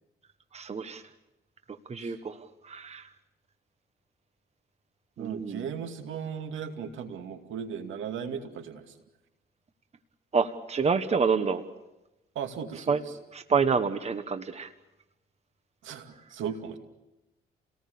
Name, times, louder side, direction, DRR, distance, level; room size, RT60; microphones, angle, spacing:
voice 1, 0.5-1.0 1.9-2.4 2.6-3.1 5.2-5.7 10.3-11.6 12.9-13.0 13.3-14.7, right 5 dB, 35° right, 9 dB, 1.4 m, -27 dB
voice 2, 5.2-8.8 12.4-13.0 15.8-16.8, right 7 dB, 80° right, 6 dB, 2.4 m, -36 dB
29.5 x 19.0 x 6.9 m, 0.98 s
cardioid pair, 90°, 20 cm